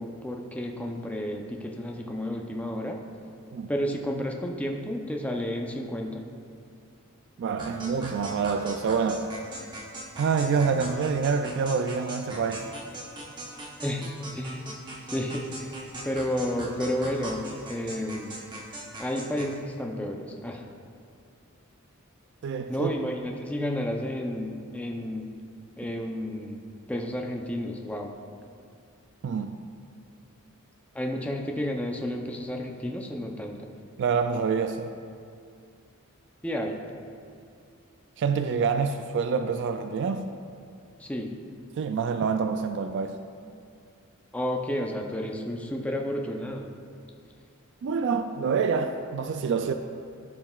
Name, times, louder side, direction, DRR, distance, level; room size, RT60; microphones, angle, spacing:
voice 1, 0.0-3.0 3.7-6.3 13.8-14.1 14.3-14.7 15.1-18.4 19.0-20.7 22.7-25.3 25.8-26.6 26.9-28.1 30.9-33.7 36.4-36.8 41.0-41.4 44.3-46.7, equal, 5° left, 1 dB, 0.5 m, -31 dB
voice 2, 7.4-9.3 10.2-12.7 22.4-22.9 29.2-29.6 34.0-35.0 38.2-40.3 41.8-43.2 47.8-49.7, right 5 dB, 55° right, 7 dB, 0.3 m, -27 dB
sound 1, 7.6-19.6, right 1 dB, 20° right, 1.0 m, -40 dB
14.5 x 5.7 x 2.4 m, 2.4 s
head